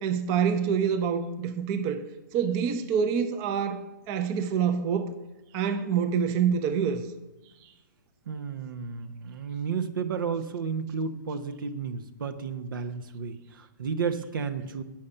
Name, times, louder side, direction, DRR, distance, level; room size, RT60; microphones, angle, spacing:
voice 1, 0.0-2.0 2.3-5.1 5.5-7.1, right 7 dB, 30° right, 0.6 m, -26 dB
voice 2, 8.3-14.8, right 5 dB, 80° right, 0.8 m, -32 dB
8.4 x 5.9 x 6.5 m
hypercardioid pair, 145°, 11 cm